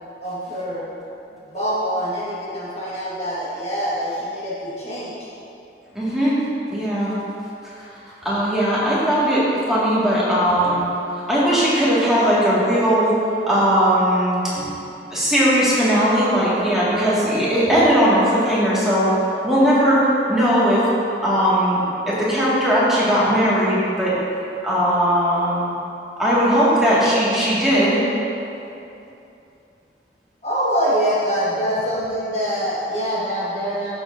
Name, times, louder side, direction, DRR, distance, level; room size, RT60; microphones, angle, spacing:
voice 1, 0.2-0.9 1.5-5.3 30.4-33.9, equal, 35° left, -8 dB, 1.5 m, -24 dB
voice 2, 5.9-6.4 6.7-7.1 7.6-10.9 11.3-13.2 13.5-14.8 15.1-19.2 19.4-20.0 20.3-20.8 21.2-24.1 24.6-25.7 26.2-28.0, equal, 5° right, -10 dB, 1.8 m, -18 dB
12.0 x 7.3 x 2.6 m, 2.8 s
head